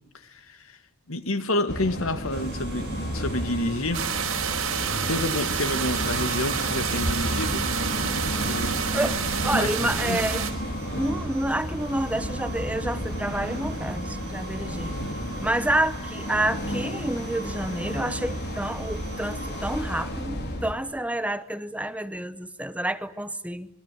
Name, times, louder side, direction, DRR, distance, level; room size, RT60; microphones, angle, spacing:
voice 1, 0.2-0.8 1.1-4.1 5.1-7.7 8.4-8.8 9.5-10.3, left 2 dB, 75° left, 2.1 m, -29 dB
sound 1, 1.7-20.7, equal, 50° left, 4.3 m, -32 dB
sound 2, 2.3-19.8, right 4 dB, 50° right, 6.2 m, -42 dB
sound 3, 3.9-10.5, right 7 dB, 70° right, 4.7 m, -29 dB
voice 2, 9.4-10.5 10.9-14.9 15.4-23.7, right 1 dB, 5° right, 0.9 m, -29 dB
26.5 x 21.5 x 8.6 m
head